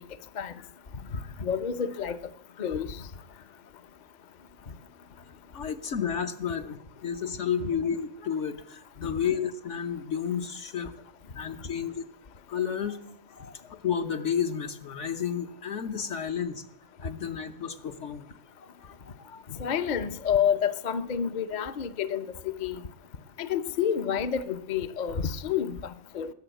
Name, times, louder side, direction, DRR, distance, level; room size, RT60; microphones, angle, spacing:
voice 1, 1.4-2.2 2.6-3.0 19.6-22.8 23.4-26.3, left 8 dB, 45° left, 0.7 m, -29 dB
voice 2, 5.5-10.9 11.3-12.0 12.5-13.0 13.3-16.6 17.0-18.3 18.6-19.4, left 7 dB, 65° left, 1.4 m, -32 dB
19.5 x 7.0 x 9.1 m
omnidirectional pair, 1.3 m